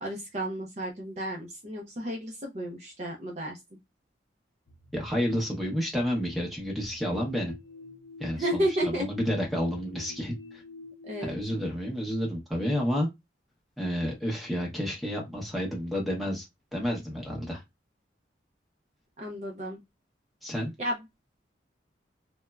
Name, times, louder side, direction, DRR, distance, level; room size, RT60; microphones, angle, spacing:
voice 1, 0.0-3.6 8.4-9.1 11.1-11.3 19.2-19.8 20.8-21.0, right 1 dB, 35° right, 0 dB, 0.5 m, -32 dB
sound 1, 4.7-11.4, left 3 dB, 80° left, 0.6 m, -48 dB
voice 2, 4.9-7.5 8.2-10.6 11.2-13.1 13.8-16.5 16.7-17.6 20.4-20.7, equal, ahead, -3 dB, 0.7 m, -30 dB
3.1 x 2.1 x 2.3 m, 0.20 s
head